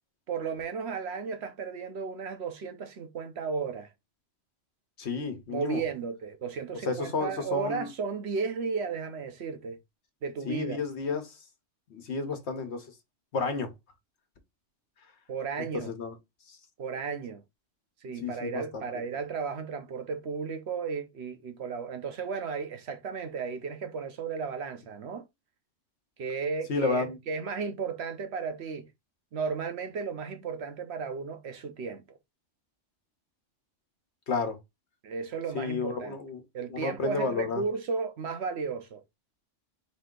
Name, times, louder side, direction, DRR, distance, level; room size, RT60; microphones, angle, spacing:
voice 1, 0.3-3.9 5.5-9.8 10.2-10.8 15.3-15.9 16.8-17.4 18.0-25.2 26.2-28.9 29.3-32.0 35.0-36.2 36.5-39.0, right 5 dB, 65° right, 1.0 m, -34 dB
voice 2, 5.0-5.8 6.9-7.9 10.4-11.3 11.9-12.8 13.3-13.7 15.6-16.1 16.5-16.6 18.2-19.0 26.7-27.2 34.3-34.6 35.5-36.4 36.7-37.6, left 4 dB, 65° left, 1.2 m, -31 dB
4.2 x 2.8 x 3.6 m
omnidirectional pair, 1.2 m